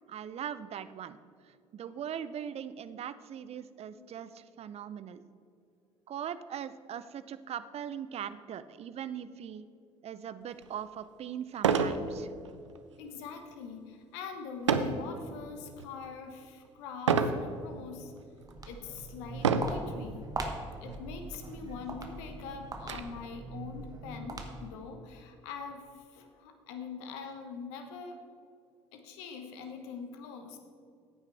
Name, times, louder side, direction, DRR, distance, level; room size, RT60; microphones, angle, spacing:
voice 1, 0.1-1.2 1.5-5.2 6.1-9.7 10.0-12.3, right 9 dB, 45° right, 14 dB, 0.6 m, -40 dB
sound 1, 10.6-10.7 11.6-12.0 12.4-12.8 14.7-15.0 15.6-16.1 17.1-17.4 18.2-18.3 19.4-19.8 20.9-21.0 21.3-21.4 21.9-23.0, right 6 dB, 90° right, 0.5 m, -27 dB
voice 2, 13.0-18.1 18.6-20.3 20.8-25.9 26.1-28.2 28.9-30.6, left 5 dB, 70° left, 5 dB, 1.2 m, -43 dB
Walk footsteps, 18.3-24.9, right 2 dB, 25° right, 1.6 m, -41 dB
15.0 x 9.0 x 3.4 m, 2.4 s
hypercardioid pair, 55°, 15 cm